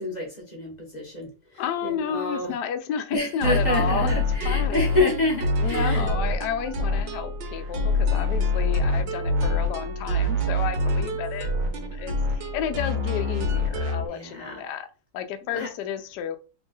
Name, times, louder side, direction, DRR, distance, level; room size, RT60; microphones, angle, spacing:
voice 1, 0.0-2.5 3.1-6.1 14.1-14.6 15.5-15.7, left 2 dB, 30° left, -1 dB, 0.8 m, -28 dB
voice 2, 1.6-4.1 4.4-5.0 5.6-14.9 15.1-16.4, left 8 dB, 70° left, 8 dB, 1.0 m, -31 dB
sound 1, 3.4-14.1, left 1 dB, 75° right, 1.5 m, -25 dB
3.6 x 2.4 x 3.9 m, 0.33 s
omnidirectional pair, 2.1 m